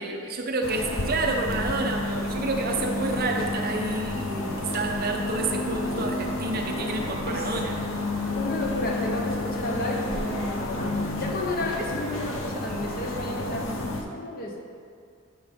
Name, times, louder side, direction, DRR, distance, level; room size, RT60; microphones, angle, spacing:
voice 1, 0.0-7.8 11.8-11.9, right 2 dB, 50° right, 2 dB, 0.8 m, -29 dB
sound 1, 0.6-14.0, left 2 dB, 75° left, 0.9 m, -30 dB
voice 2, 8.3-14.6, left 1 dB, 50° left, 1 dB, 1.0 m, -32 dB
10.5 x 5.8 x 3.6 m, 2.3 s
head